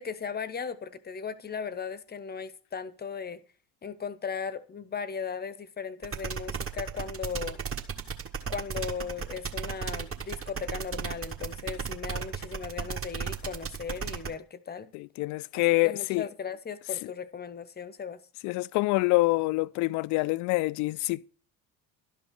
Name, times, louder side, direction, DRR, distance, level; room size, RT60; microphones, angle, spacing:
voice 1, 0.0-3.4 3.8-7.6 8.5-14.9 15.5-18.2, left 6 dB, 20° left, 0.8 m, -37 dB
sound 1, 6.0-14.3, right 6 dB, 25° right, 1.4 m, -34 dB
voice 2, 14.9-16.2 18.4-21.3, left 21 dB, 40° left, 0.4 m, -26 dB
12.0 x 5.4 x 6.3 m
figure-of-eight pair, 55°, 49 cm